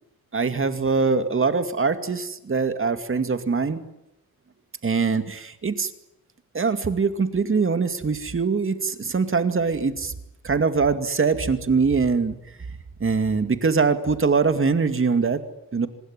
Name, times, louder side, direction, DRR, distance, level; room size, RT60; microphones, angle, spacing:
voice 1, 0.3-3.8 4.8-5.9 6.5-10.1 10.4-12.4 13.0-15.4 15.7-15.9, right 4 dB, 35° right, 9 dB, 2.4 m, -23 dB
26.5 x 20.5 x 9.9 m, 0.85 s
wide cardioid pair, 115°, 36 cm